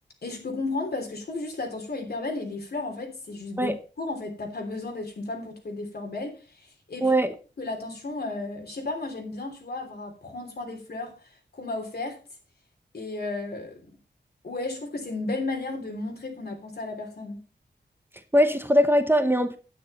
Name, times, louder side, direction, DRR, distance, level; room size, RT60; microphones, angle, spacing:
voice 1, 0.2-7.2 7.6-12.2 12.9-13.8 14.4-17.4, left 2 dB, 60° left, 3.3 m, -34 dB
voice 2, 7.0-7.3 18.3-19.6, equal, 10° right, 0.9 m, -21 dB
9.7 x 9.5 x 4.2 m
wide cardioid pair, 115°, 18 cm